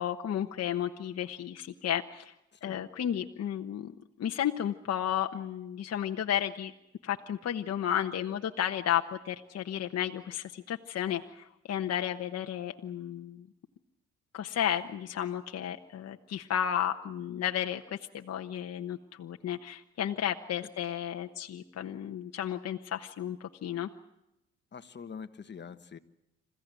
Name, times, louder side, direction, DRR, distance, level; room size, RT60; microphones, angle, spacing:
voice 1, 0.0-2.3 2.6-3.9 4.2-6.7 7.0-13.5 14.3-23.9, left 10 dB, 55° left, 5 dB, 1.1 m, -33 dB
voice 2, 2.5-2.8 20.6-20.7 24.7-26.0, left 6 dB, 35° left, 10 dB, 1.4 m, -45 dB
27.5 x 15.5 x 9.3 m, 0.89 s
cardioid pair, 90°, 30 cm